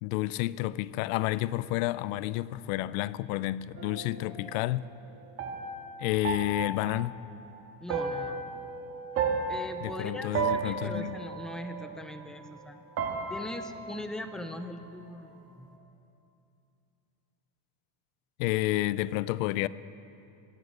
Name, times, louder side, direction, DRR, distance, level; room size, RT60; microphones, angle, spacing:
voice 1, 0.0-4.9 6.0-7.1 9.8-11.1 18.4-19.7, left 16 dB, 80° left, 0.5 m, -30 dB
sound 1, 3.8-12.7 13.0-15.0, right 5 dB, 35° right, 1.6 m, -35 dB
voice 2, 7.8-8.4 9.5-12.8 13.3-15.7, left 1 dB, ahead, 0.4 m, -40 dB
18.0 x 12.5 x 6.3 m
cardioid pair, 160°, 40 cm